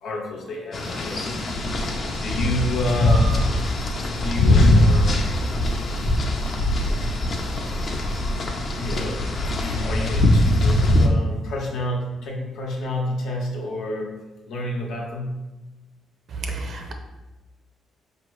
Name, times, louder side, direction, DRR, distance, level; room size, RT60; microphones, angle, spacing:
voice 1, 0.0-1.3 2.2-3.4 4.2-5.3 8.8-14.1 14.5-15.4, left 1 dB, 75° left, -1 dB, 0.9 m, -29 dB
sound 1, 0.7-11.1, left 1 dB, 50° left, 0.6 m, -21 dB
voice 2, 3.1-3.5 16.3-16.9, right 3 dB, 55° right, 4 dB, 0.6 m, -32 dB
5.0 x 2.9 x 3.1 m, 1.1 s
cardioid pair, 90°, 0 cm